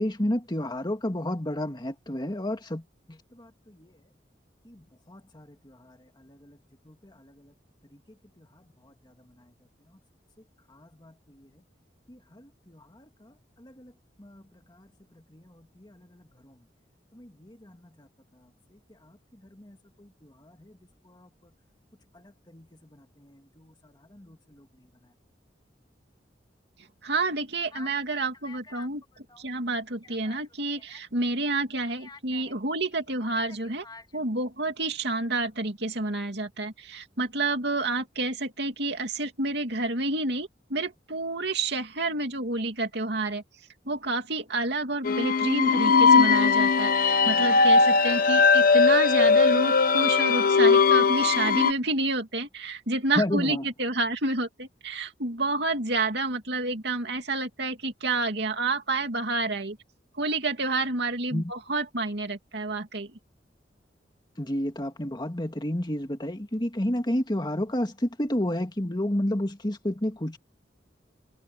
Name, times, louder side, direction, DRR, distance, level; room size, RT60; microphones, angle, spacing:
voice 1, 0.0-2.8 3.1-3.9 4.7-6.6 6.9-7.5 8.4-8.5 8.8-8.9 10.7-11.5 12.1-13.3 13.6-13.9 14.2-14.4 14.7-14.9 15.3-16.5 17.1-18.1 19.0-19.1 19.5-20.7 21.1-21.3 22.1-22.7 22.9-24.7 27.7-28.9 30.2-30.4 30.9-31.0 32.1-32.4 33.8-34.0 53.1-53.7 61.3-61.5 64.4-70.4, left 1 dB, 25° left, 2.1 m, -32 dB
voice 2, 27.0-33.8 34.1-43.4 43.9-59.8 60.2-63.1, right 2 dB, 65° right, 2.9 m, -29 dB
sound 1, 45.0-51.7, left 4 dB, 50° left, 1.0 m, -19 dB
head